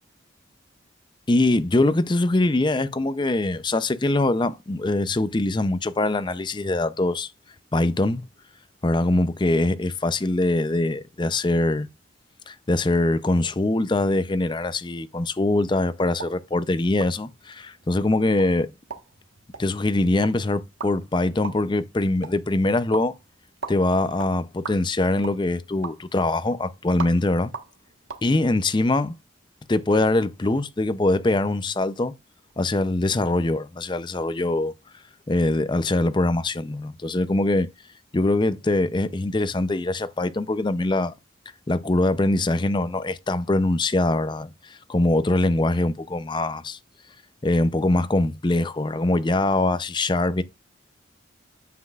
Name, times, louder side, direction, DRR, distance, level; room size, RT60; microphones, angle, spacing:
voice 1, 1.3-7.3 7.7-8.2 8.8-11.9 12.5-18.7 19.6-23.1 23.7-27.5 28.2-29.2 29.7-32.1 32.6-34.7 35.3-37.7 38.1-41.1 41.7-46.8 47.4-50.4, left 2 dB, 25° left, 0.5 m, -23 dB
sound 1, 16.1-28.3, right 5 dB, 90° right, 1.3 m, -41 dB
9.3 x 7.6 x 2.4 m
head